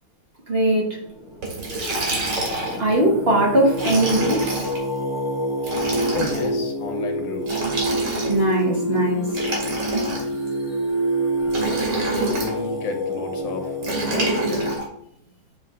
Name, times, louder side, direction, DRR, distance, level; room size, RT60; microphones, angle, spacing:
voice 1, 0.5-0.9 2.8-4.7 8.3-9.3, right 1 dB, 40° right, -3 dB, 1.1 m, -20 dB
Singing, 0.9-14.8, right 1 dB, ahead, 0.8 m, -28 dB
Liquid, 1.4-2.9 3.7-4.8 5.6-6.5 7.4-8.5 9.3-10.5 11.5-12.6 13.8-14.8, right 2 dB, 70° right, 2.4 m, -26 dB
voice 2, 6.1-7.7 12.2-14.8, left 3 dB, 80° left, 5 dB, 1.6 m, -31 dB
8.6 x 3.2 x 3.4 m, 0.69 s
omnidirectional pair, 2.0 m